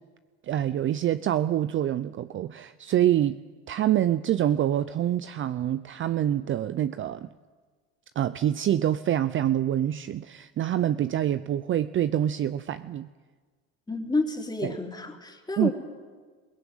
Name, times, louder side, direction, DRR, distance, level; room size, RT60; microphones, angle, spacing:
voice 1, 0.4-3.4 3.7-7.3 8.2-13.1 14.6-14.8 15.6-15.7, right 11 dB, 35° right, 13 dB, 0.6 m, -26 dB
voice 2, 13.9-15.7, left 2 dB, 10° left, 2 dB, 3.4 m, -29 dB
22.0 x 17.5 x 9.0 m, 1.5 s
supercardioid pair, 100°, 35 cm